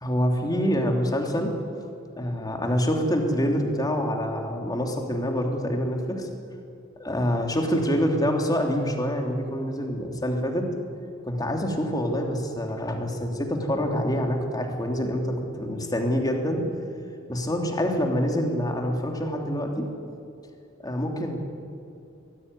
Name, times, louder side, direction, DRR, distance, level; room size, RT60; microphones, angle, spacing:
voice 1, 0.0-1.6 2.2-6.3 7.0-10.7 11.2-16.7 17.3-19.9 20.8-21.4, equal, 20° left, 2 dB, 3.1 m, -26 dB
23.0 x 16.5 x 9.7 m, 2.7 s
head